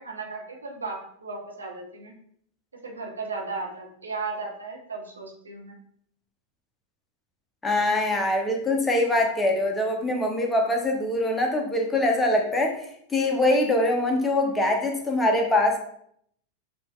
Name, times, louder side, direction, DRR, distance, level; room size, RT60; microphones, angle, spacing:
voice 1, 0.0-2.1 2.8-5.7, right 4 dB, 75° right, -1 dB, 1.0 m, -35 dB
voice 2, 7.6-15.8, left 1 dB, 10° left, 2 dB, 0.8 m, -23 dB
7.0 x 2.9 x 2.4 m, 0.67 s
figure-of-eight pair, 90°, 0 cm